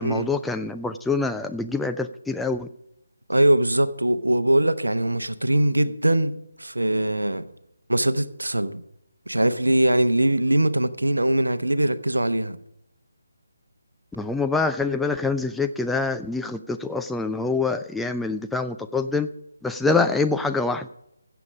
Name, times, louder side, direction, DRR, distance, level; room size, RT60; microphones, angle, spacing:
voice 1, 0.0-2.7 14.2-19.3 19.6-20.9, left 3 dB, 5° left, 0.3 m, -25 dB
voice 2, 3.3-7.5 7.9-8.8 9.3-12.6, right 1 dB, 75° right, 0.8 m, -22 dB
16.0 x 7.0 x 5.0 m
figure-of-eight pair, 150°, 0 cm